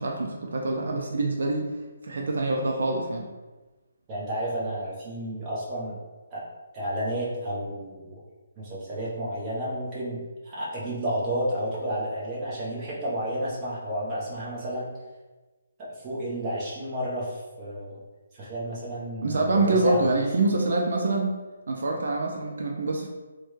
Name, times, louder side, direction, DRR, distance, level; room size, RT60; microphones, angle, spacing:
voice 1, 0.0-1.7 2.0-3.3 19.2-21.3 21.7-23.1, right 2 dB, 70° right, 0 dB, 0.4 m, -25 dB
voice 2, 4.1-6.0 6.3-6.4 6.7-8.2 8.6-14.9 15.8-18.0 18.3-20.0, right 1 dB, 20° right, -7 dB, 0.9 m, -31 dB
3.1 x 2.2 x 3.1 m, 1.2 s
hypercardioid pair, 165°, 0 cm